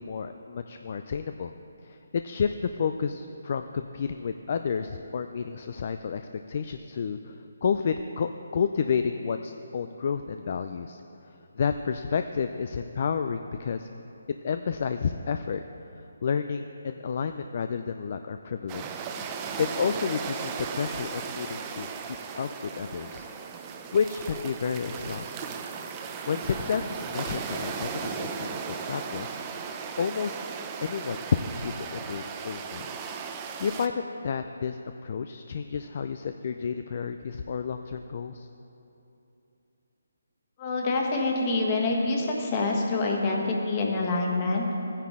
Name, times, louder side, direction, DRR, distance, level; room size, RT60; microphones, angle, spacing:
voice 1, 0.0-1.5 1.8-11.0 11.5-13.9 14.4-15.6 16.2-19.1 19.6-23.3 23.9-25.5 26.3-29.4 30.0-30.4 30.8-32.9 33.3-38.5, left 6 dB, 45° left, 8 dB, 0.3 m, -31 dB
sound 1, 18.7-33.9, right 6 dB, 20° right, 0.5 m, -36 dB
voice 2, 40.6-44.6, left 3 dB, 25° left, 0 dB, 1.4 m, -26 dB
14.0 x 9.9 x 3.6 m, 2.9 s
hypercardioid pair, 160°, 0 cm